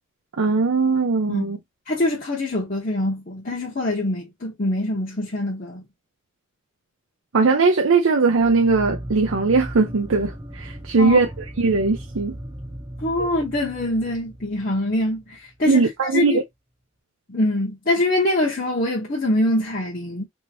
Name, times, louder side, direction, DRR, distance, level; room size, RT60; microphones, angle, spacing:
voice 1, 0.4-1.6 7.3-11.3 11.6-12.4 15.7-16.4, right 4 dB, 85° right, 0.6 m, -19 dB
voice 2, 1.9-5.8 11.0-11.2 13.0-15.8 16.1-16.4 17.3-20.3, left 1 dB, 45° left, 0.9 m, -24 dB
sound 1, 8.3-15.6, equal, 15° right, 0.7 m, -37 dB
3.6 x 2.5 x 2.7 m
head